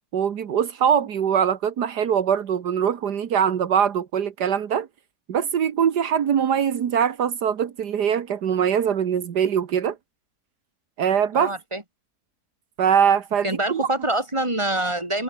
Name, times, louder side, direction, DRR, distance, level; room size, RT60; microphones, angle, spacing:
voice 1, 0.1-4.9 5.3-10.0 11.0-11.5 12.8-13.8, right 8 dB, 80° right, 1.9 m, -22 dB
voice 2, 11.3-11.8 13.4-15.2, right 1 dB, 15° right, 4.2 m, -25 dB
omnidirectional pair, 1.7 m